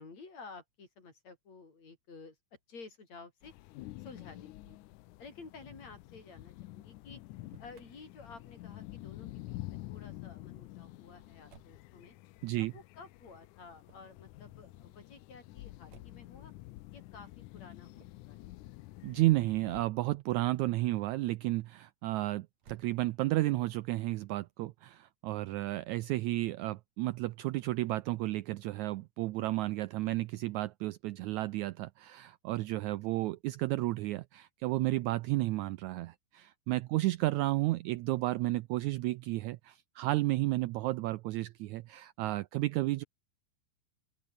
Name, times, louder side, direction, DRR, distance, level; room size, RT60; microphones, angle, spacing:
voice 1, 0.0-2.4 2.7-3.5 4.0-4.8 5.2-7.2 7.6-12.1 12.6-16.5 16.9-18.5 36.9-37.1, left 4 dB, 55° left, 6.5 m, -52 dB
sound 1, 3.4-19.8, left 18 dB, 80° left, 2.0 m, -49 dB
Motor vehicle (road), 7.2-7.9 11.5-11.9 13.8-14.2 15.9-16.3 17.9-18.3 22.5-23.4, right 7 dB, 55° right, 4.0 m, -59 dB
voice 2, 19.0-43.0, right 18 dB, 80° right, 1.7 m, -32 dB
open air
omnidirectional pair, 3.8 m